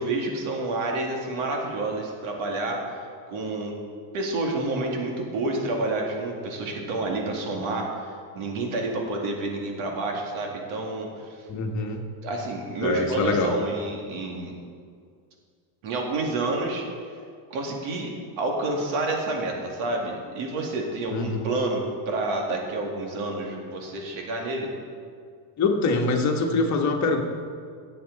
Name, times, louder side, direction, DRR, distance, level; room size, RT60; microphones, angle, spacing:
voice 1, 0.0-3.8 4.1-11.4 12.2-14.5 15.8-16.8 17.5-21.8 22.1-24.7, right 2 dB, 80° right, 0 dB, 2.3 m, -29 dB
voice 2, 11.5-12.0 12.8-13.6 21.1-21.5 25.6-27.2, left 3 dB, 35° left, 2 dB, 1.3 m, -24 dB
17.5 x 7.8 x 4.0 m, 2.1 s
cardioid pair, 170°, 48 cm